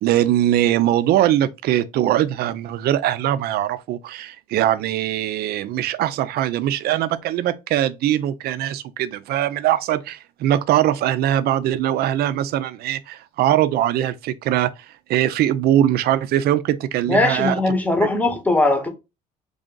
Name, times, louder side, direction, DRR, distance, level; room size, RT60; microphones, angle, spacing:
voice 1, 0.0-14.7 15.1-17.6, right 12 dB, 65° right, 0.4 m, -21 dB
voice 2, 17.1-18.9, left 2 dB, 10° left, 0.8 m, -19 dB
3.3 x 2.5 x 3.7 m
cardioid pair, 110°, 17 cm